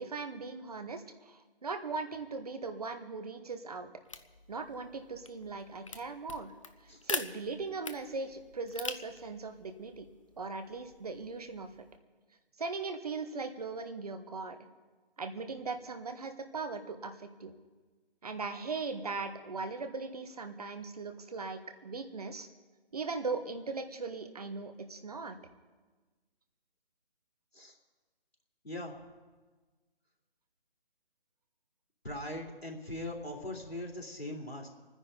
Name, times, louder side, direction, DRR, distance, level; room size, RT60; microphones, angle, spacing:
voice 1, 0.0-3.9 4.5-6.5 7.0-10.1 10.4-11.7 12.6-14.6 15.2-17.5 18.2-22.5 22.9-25.4, right 4 dB, 40° right, 8 dB, 1.1 m, -39 dB
sound 1, 4.1-12.0, left 4 dB, 35° left, 0.6 m, -44 dB
voice 2, 28.6-29.0 32.0-34.7, left 1 dB, 85° left, 0 dB, 3.2 m, -40 dB
28.5 x 10.0 x 3.9 m, 1.3 s
figure-of-eight pair, 150°, 30 cm